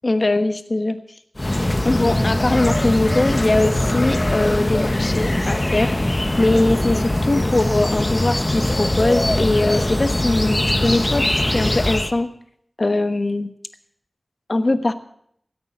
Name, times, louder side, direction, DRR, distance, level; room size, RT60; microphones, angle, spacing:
voice 1, 0.0-1.0 1.8-12.3 12.8-13.5 14.5-14.9, left 2 dB, 50° left, 9 dB, 1.2 m, -21 dB
sound 1, 1.4-12.1, left 1 dB, 30° left, 1.2 m, -21 dB
16.5 x 8.6 x 7.2 m, 0.68 s
wide cardioid pair, 55°, 0 cm